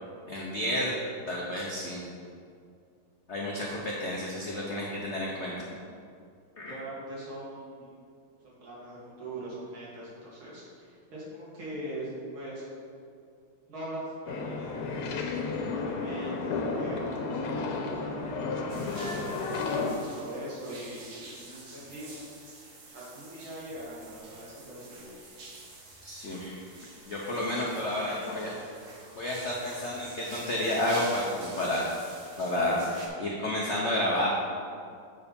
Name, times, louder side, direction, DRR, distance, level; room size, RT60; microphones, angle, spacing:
voice 1, 0.3-1.0 1.3-2.0 3.3-5.6 6.6-6.7 26.0-26.5 27.0-28.5 29.2-31.8 32.4-34.3, left 1 dB, 65° left, -4 dB, 0.6 m, -30 dB
voice 2, 6.7-8.0 8.4-12.6 13.7-17.6 18.0-22.3 22.9-25.2, right 1 dB, 65° right, -6 dB, 2.7 m, -42 dB
sound 1, 14.3-19.9, left 3 dB, 85° left, 1.7 m, -32 dB
sound 2, 18.7-33.1, right 2 dB, 50° right, 1.0 m, -48 dB
7.7 x 4.6 x 5.3 m, 2.3 s
omnidirectional pair, 2.4 m